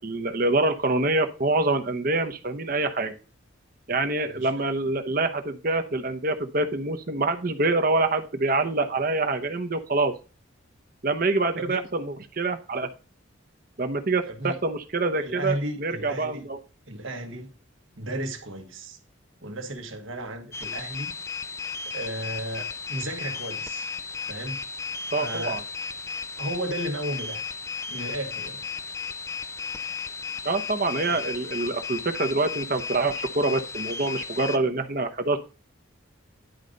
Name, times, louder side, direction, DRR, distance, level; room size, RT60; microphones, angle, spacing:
voice 1, 0.0-3.2 3.9-10.1 11.0-12.9 13.8-16.6 25.1-25.6 30.4-35.4, right 2 dB, 45° right, 0.9 m, -26 dB
voice 2, 14.3-14.6 15.1-16.5 16.9-17.5 17.9-19.0 19.4-21.2 21.8-23.9 24.3-24.6 25.2-25.6 26.4-27.5 27.9-28.7 31.1-31.2, right 1 dB, 75° right, 1.6 m, -34 dB
sound 1, 20.5-34.6, left 5 dB, 15° left, 0.3 m, -34 dB
10.5 x 4.0 x 5.1 m
head